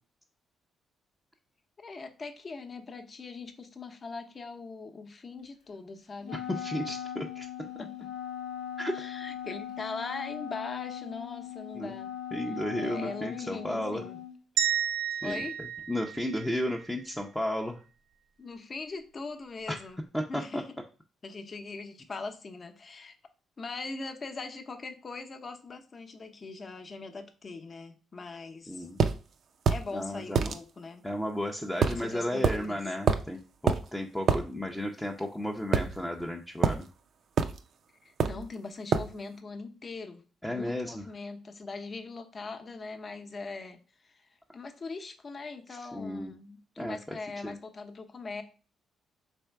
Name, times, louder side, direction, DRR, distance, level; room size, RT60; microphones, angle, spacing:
voice 1, 1.8-6.4 7.8-8.1 8.9-12.1 12.8-14.2 15.2-15.6 18.4-20.0 20.3-20.6 21.2-23.1 23.6-28.9 29.7-31.0 31.8-32.8 38.0-40.2 40.5-43.8 44.0-44.2 44.5-48.4, left 3 dB, 40° left, 6 dB, 0.8 m, -41 dB
Wind instrument woodwind instrument, 6.2-14.4, left 9 dB, 80° left, 0.8 m, -40 dB
voice 2, 6.5-7.5 8.8-9.1 11.7-11.9 12.3-14.0 15.2-17.8 19.7-19.8 20.1-20.6 28.7-29.0 29.9-30.5 31.0-36.9 40.4-41.0 45.7-46.3 46.8-47.2 47.4-47.6, left 1 dB, 5° left, 1 dB, 0.5 m, -34 dB
sound 1, 14.6-16.8, right 9 dB, 90° right, 0.7 m, -31 dB
sound 2, 29.0-29.2 29.7-29.9 30.4-30.6 31.8-32.0 32.4-32.6 33.1-33.3 33.7-33.8 34.3-34.4 35.7-36.3 36.6-36.8 37.4-37.6 38.2-38.5 38.9-39.1, right 6 dB, 60° right, 0.4 m, -25 dB
3.4 x 3.2 x 4.6 m, 0.36 s
cardioid pair, 90°, 0 cm